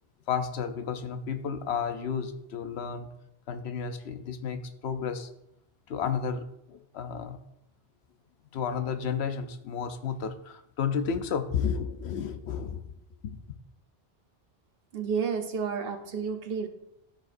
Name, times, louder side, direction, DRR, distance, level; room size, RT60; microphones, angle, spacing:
voice 1, 0.3-3.1 3.5-5.3 5.9-7.4 8.5-12.9 13.2-13.4, left 6 dB, 90° left, 0.9 m, -32 dB
voice 2, 14.9-16.7, right 6 dB, 65° right, 1.0 m, -31 dB
13.0 x 4.9 x 2.6 m
omnidirectional pair, 1.0 m